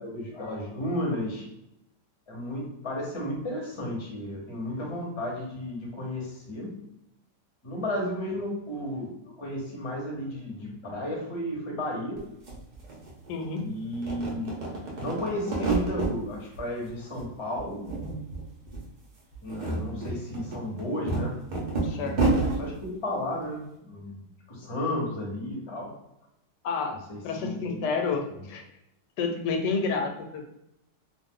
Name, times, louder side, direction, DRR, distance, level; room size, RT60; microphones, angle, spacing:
voice 1, 0.0-1.5 2.3-6.7 7.6-12.2 13.6-14.5 15.0-17.8 19.4-21.4 21.9-22.3 22.6-25.9 27.1-28.1, left 1 dB, 25° left, -1 dB, 0.7 m, -33 dB
sound 1, 12.2-12.3 12.5-13.6 13.9-16.1 16.5-17.3 17.5-18.4 18.7-18.8 19.3-22.6, right 3 dB, 70° right, 0.4 m, -29 dB
voice 2, 13.3-13.6 21.8-22.4 26.6-27.0 27.2-28.6 29.2-30.5, left 4 dB, 85° left, 3 dB, 1.2 m, -30 dB
2.5 x 2.4 x 3.6 m, 0.85 s
omnidirectional pair, 1.8 m